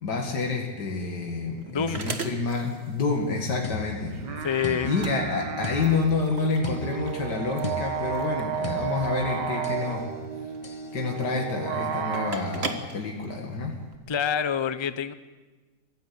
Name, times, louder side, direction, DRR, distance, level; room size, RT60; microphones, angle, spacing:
voice 1, 0.0-4.5 4.8-10.1 10.9-13.8, left 4 dB, 80° left, 1 dB, 2.7 m, -28 dB
sound 1, 0.7-14.0, right 4 dB, 40° right, 1.7 m, -41 dB
voice 2, 1.7-2.0 4.4-4.9 14.1-15.1, left 7 dB, 45° left, 12 dB, 0.3 m, -26 dB
sound 2, 3.6-9.9 10.6-10.9, left 3 dB, 25° left, 1.0 m, -38 dB
sound 3, 4.1-12.3, right 7 dB, 85° right, 2.2 m, -33 dB
23.0 x 16.0 x 8.4 m, 1.3 s
omnidirectional pair, 1.8 m